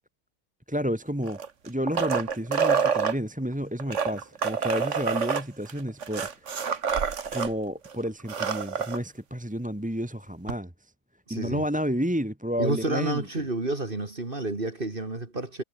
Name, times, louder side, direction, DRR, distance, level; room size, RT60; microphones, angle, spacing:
voice 1, 0.7-1.4 1.6-6.6 7.3-10.9 11.3-13.4, equal, 5° right, 1.8 m, -31 dB
sound 1, 1.2-3.2 3.8-7.5 7.8-7.9 8.2-9.0 10.5-10.6, right 6 dB, 50° right, 1.7 m, -27 dB
voice 2, 11.3-11.6 12.6-15.6, right 2 dB, 30° right, 2.8 m, -30 dB
omnidirectional pair, 1.7 m